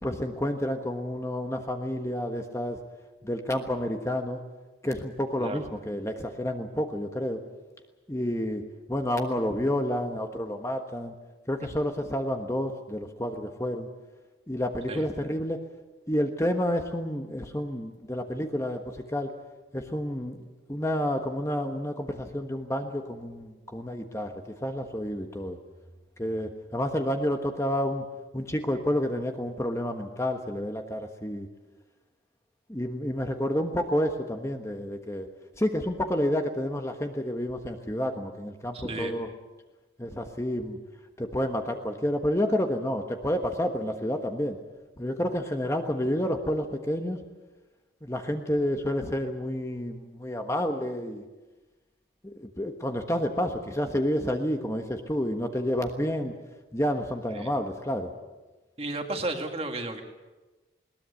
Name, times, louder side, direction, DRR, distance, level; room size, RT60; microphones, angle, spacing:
voice 1, 0.0-2.8 3.2-4.4 4.8-7.4 8.1-8.6 8.9-11.1 11.5-13.9 14.5-15.6 16.1-18.8 19.1-19.3 19.7-20.4 20.7-24.3 24.6-25.6 26.2-28.0 28.3-31.5 32.7-35.3 35.6-39.3 40.0-40.8 41.2-44.6 45.0-47.2 48.0-51.2 52.2-56.3 56.7-58.1, equal, 15° left, 5 dB, 1.3 m, -29 dB
voice 2, 5.4-5.7 14.9-15.1 38.7-39.1 57.3-57.5 58.8-60.0, right 2 dB, 30° right, 4 dB, 2.1 m, -33 dB
20.5 x 19.0 x 8.4 m, 1.2 s
head